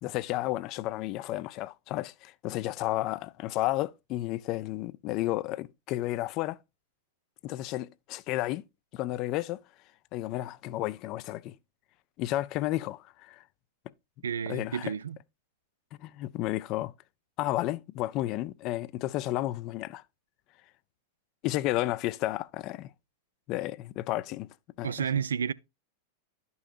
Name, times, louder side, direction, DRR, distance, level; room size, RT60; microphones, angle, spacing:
voice 1, 0.0-6.6 7.4-8.6 8.9-9.6 10.1-11.6 12.2-13.4 14.5-14.9 16.0-16.9 17.4-20.0 21.4-22.9 23.5-24.5 24.8-24.9, left 16 dB, 40° left, 0.4 m, -32 dB
voice 2, 14.2-15.2 24.8-25.5, right 7 dB, 70° right, 0.3 m, -31 dB
12.0 x 5.5 x 2.5 m
figure-of-eight pair, 90°, 0 cm